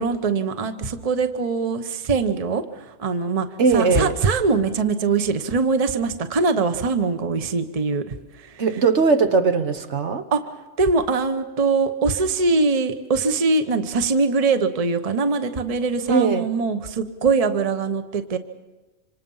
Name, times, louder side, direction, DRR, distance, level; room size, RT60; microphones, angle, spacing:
voice 1, 0.0-3.5 3.7-8.6 10.3-10.5 10.8-18.4, right 4 dB, 30° right, 9 dB, 1.0 m, -22 dB
voice 2, 3.6-4.1 8.6-10.3 16.1-16.5, right 4 dB, 65° right, 8 dB, 1.4 m, -19 dB
26.5 x 26.0 x 5.5 m, 1.2 s
omnidirectional pair, 1.3 m